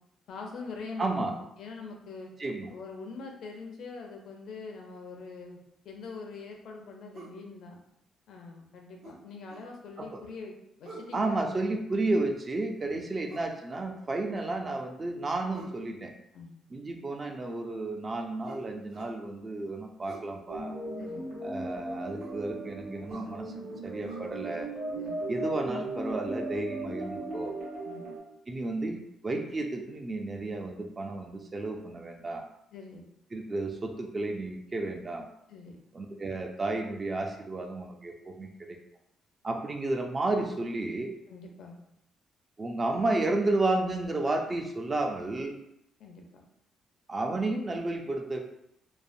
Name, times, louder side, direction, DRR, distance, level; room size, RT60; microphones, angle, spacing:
voice 1, 0.3-2.3 2.7-5.6 5.8-7.8 8.3-11.4 12.8-13.0 16.3-16.5 21.0-21.3 24.9-25.2 27.8-28.1 32.7-33.0 35.5-35.8 41.3-41.8 46.0-46.4, left 4 dB, 75° left, 2 dB, 0.6 m, -43 dB
voice 2, 1.0-1.3 2.4-2.7 10.0-10.2 11.1-16.1 16.7-20.7 21.4-23.5 23.8-24.7 25.3-27.5 28.5-32.4 33.3-35.3 35.9-38.8 39.4-41.1 42.6-45.6 47.1-48.4, right 2 dB, 30° right, 3 dB, 0.4 m, -32 dB
sound 1, 7.1-7.4 9.0-9.7 10.8-11.2 13.3-13.5 15.5-15.8 18.4-19.2 20.0-20.3 22.2-22.4 23.1-23.3 24.1-24.2, right 2 dB, 70° right, 1.2 m, -47 dB
sound 2, 20.5-28.2, right 2 dB, 90° right, 1.4 m, -37 dB
3.2 x 2.1 x 2.5 m, 0.77 s
cardioid pair, 90°, 0 cm